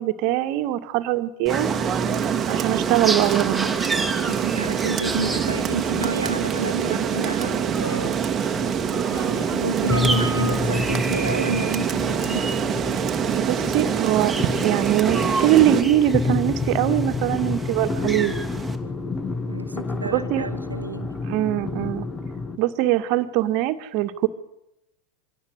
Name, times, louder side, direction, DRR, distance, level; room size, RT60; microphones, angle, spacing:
voice 1, 0.0-1.7 2.5-3.7 13.3-14.4 14.6-18.3 20.1-20.5 21.3-22.1 22.6-24.3, right 13 dB, 45° right, 2.0 m, -22 dB
sound 1, 1.5-18.8, right 2 dB, 5° right, 2.8 m, -32 dB
Rain, 1.5-15.8, right 8 dB, 25° right, 2.0 m, -25 dB
voice 2, 4.3-8.2 9.0-12.6 19.5-21.2, right 3 dB, 80° right, 1.5 m, -30 dB
sound 2, 5.8-22.6, left 3 dB, 15° left, 2.3 m, -30 dB
25.5 x 18.0 x 8.5 m
figure-of-eight pair, 85°, 0 cm